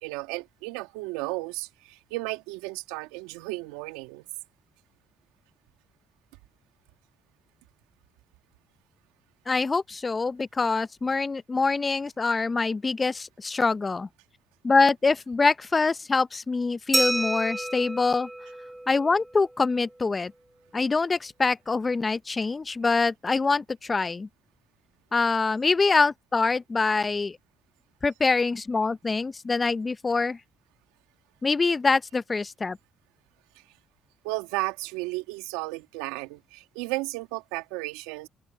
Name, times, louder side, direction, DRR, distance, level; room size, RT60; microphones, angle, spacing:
voice 1, 0.0-4.2 33.6-33.7 34.2-38.3, right 22 dB, 80° right, 2.0 m, -34 dB
voice 2, 9.5-14.1 14.6-18.3 18.9-20.3 20.7-24.3 25.1-27.4 28.0-30.4 31.4-32.8, left 4 dB, 30° left, 0.9 m, -25 dB
Glass, 16.9-19.4, right 1 dB, 10° right, 4.8 m, -29 dB
open air
hypercardioid pair, 50°, 0 cm